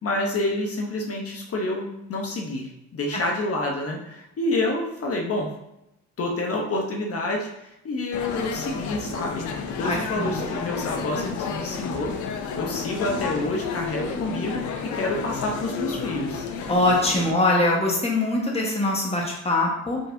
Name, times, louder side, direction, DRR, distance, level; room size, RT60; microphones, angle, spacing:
voice 1, 0.0-5.5 6.2-9.5 9.8-14.6 14.9-16.4, left 2 dB, 50° left, 0 dB, 1.0 m, -28 dB
sound 1, 8.1-17.3, left 5 dB, 80° left, 0.6 m, -31 dB
voice 2, 9.8-10.5 16.7-20.0, left 2 dB, 20° left, -2 dB, 1.4 m, -23 dB
4.8 x 4.0 x 2.7 m, 0.85 s
cardioid pair, 90°, 30 cm